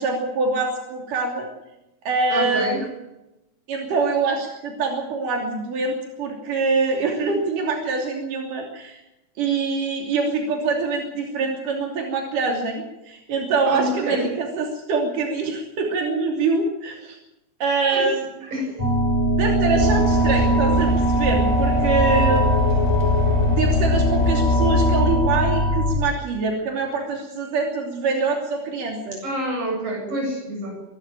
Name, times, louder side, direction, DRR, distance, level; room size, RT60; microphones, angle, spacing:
voice 1, 0.0-1.5 2.1-2.7 3.7-9.0 9.4-17.2 17.6-18.2 19.4-22.9 23.5-29.2, right 4 dB, 90° right, 1 dB, 4.6 m, -24 dB
voice 2, 2.3-2.8 13.7-14.3 17.9-18.1 18.5-18.8 29.2-30.8, right 1 dB, 50° right, 1 dB, 9.1 m, -27 dB
sound 1, 18.8-25.9, right 1 dB, 65° left, 5.4 m, -21 dB
sound 2, 19.8-25.2, left 3 dB, 15° left, 2.8 m, -23 dB
25.0 x 13.0 x 8.9 m, 0.93 s
omnidirectional pair, 3.6 m